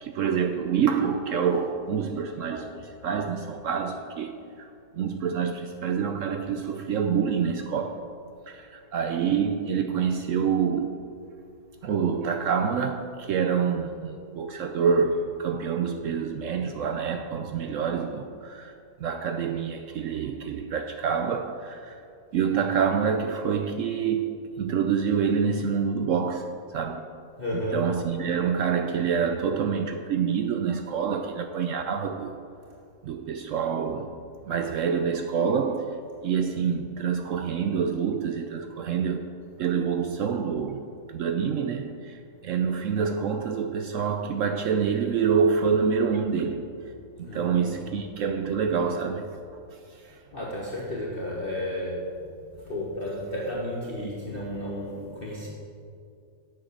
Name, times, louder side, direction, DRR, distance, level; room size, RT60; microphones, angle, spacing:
voice 1, 0.0-4.3 5.0-7.9 8.5-8.6 8.9-10.9 11.8-18.7 19.0-22.0 22.3-24.3 24.6-27.0 27.7-32.3 33.0-34.1 34.5-35.9 36.2-39.2 39.6-40.8 41.1-41.9 42.4-46.6 47.3-49.3, right 6 dB, 70° right, 0.7 m, -26 dB
voice 2, 27.4-27.9 47.2-47.9 50.3-52.2 52.6-55.5, left 1 dB, 35° left, 1.4 m, -32 dB
8.1 x 7.6 x 6.4 m
omnidirectional pair, 1.8 m